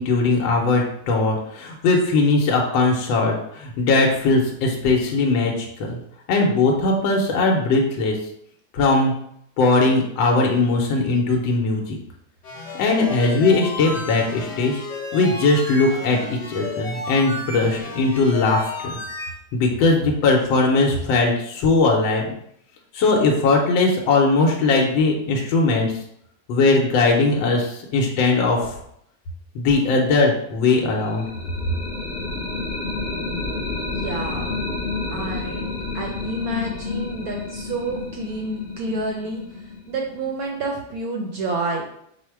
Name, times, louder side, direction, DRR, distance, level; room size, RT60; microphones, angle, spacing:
voice 1, 0.0-6.0 6.3-8.2 8.7-9.1 9.6-12.0 12.8-14.8 15.1-19.0 19.5-22.2 22.9-25.9 26.5-28.8 29.5-31.3, left 3 dB, 80° left, 0 dB, 1.4 m, -19 dB
sound 1, 12.4-19.3, left 2 dB, 55° left, 0.9 m, -33 dB
sound 2, 30.8-40.6, left 3 dB, 30° left, 1.0 m, -30 dB
voice 2, 33.8-34.5 35.1-39.4 39.9-41.8, right 2 dB, 70° right, 1 dB, 0.8 m, -29 dB
4.8 x 2.0 x 4.5 m, 0.72 s
omnidirectional pair, 2.1 m